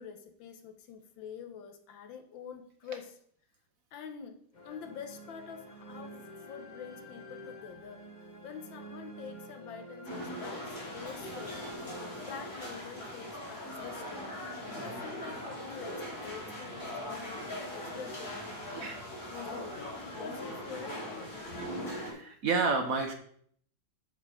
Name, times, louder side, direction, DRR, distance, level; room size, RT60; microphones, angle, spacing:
voice 1, 0.0-3.1 3.9-4.4 4.6-8.0 8.4-11.8 12.2-14.3 14.8-18.9 19.3-21.9, left 7 dB, 80° left, 7 dB, 1.6 m, -46 dB
sound 1, 4.5-12.9, right 1 dB, 30° left, 1.0 m, -49 dB
sound 2, 10.0-22.1, left 1 dB, 50° left, 3.6 m, -40 dB
voice 2, 14.7-15.1 18.7-19.0 21.9-23.1, right 4 dB, 55° right, 5 dB, 1.1 m, -31 dB
9.3 x 4.6 x 4.9 m, 0.62 s
omnidirectional pair, 2.1 m